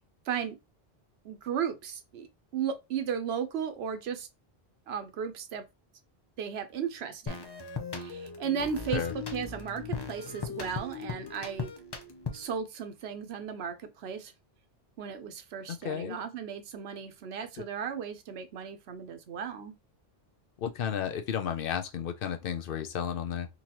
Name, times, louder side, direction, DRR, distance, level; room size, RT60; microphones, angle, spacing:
voice 1, 0.3-0.6 1.2-2.3 2.5-4.3 4.9-5.6 6.4-7.5 8.0-11.7 12.3-14.3 15.0-19.7, right 7 dB, 80° right, 0.9 m, -35 dB
sound 1, 7.3-12.6, left 5 dB, 30° left, 0.5 m, -38 dB
voice 2, 15.8-16.2 17.6-17.7 20.6-23.5, left 8 dB, 65° left, 0.7 m, -33 dB
3.9 x 2.9 x 2.9 m
omnidirectional pair, 1.0 m